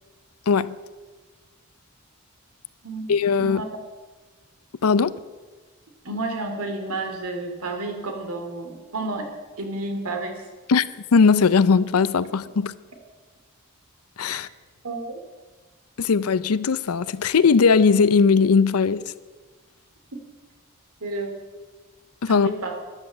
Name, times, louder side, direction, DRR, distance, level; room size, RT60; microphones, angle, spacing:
voice 1, 3.1-3.6 4.8-5.2 10.7-10.8 11.1-12.7 14.2-14.5 16.0-19.0 22.2-22.5, left 5 dB, 85° left, 0.5 m, -19 dB
voice 2, 6.0-9.3 9.6-10.4 14.3-14.4 14.8-15.2 20.1-20.2 21.0-21.4 22.3-22.8, right 2 dB, 85° right, 2.5 m, -31 dB
13.0 x 11.0 x 7.2 m
head